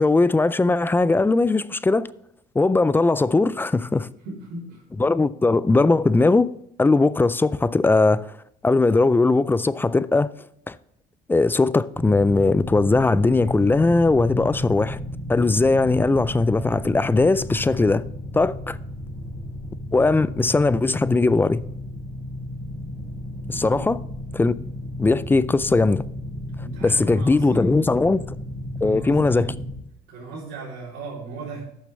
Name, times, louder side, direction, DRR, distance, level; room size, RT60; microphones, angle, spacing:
voice 1, 0.0-2.1 2.6-4.1 5.0-6.5 6.8-8.3 8.6-10.3 10.7-10.8 11.3-15.0 15.3-18.0 18.3-18.8 19.9-21.6 23.5-24.0 24.3-24.5 25.0-26.0 26.8-28.2 28.8-29.5, left 3 dB, 10° left, 0.3 m, -19 dB
voice 2, 4.2-4.8 23.4-23.8 26.6-28.3 28.8-29.6 30.1-31.6, right 3 dB, 85° right, 3.5 m, -37 dB
sound 1, 12.0-29.7, left 1 dB, 30° right, 4.1 m, -33 dB
11.5 x 6.7 x 3.3 m
cardioid pair, 110°, 17 cm